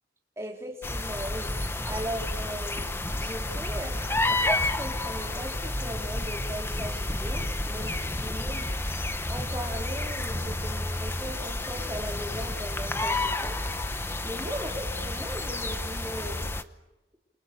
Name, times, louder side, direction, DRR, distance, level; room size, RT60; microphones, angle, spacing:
voice 1, 0.4-1.5 1.8-2.9 3.2-8.7 9.3-13.6 14.2-16.5, equal, 15° right, 1 dB, 3.6 m, -38 dB
sound 1, 0.8-16.6, left 2 dB, 15° left, 0.9 m, -30 dB
29.0 x 27.0 x 6.9 m, 1.1 s
head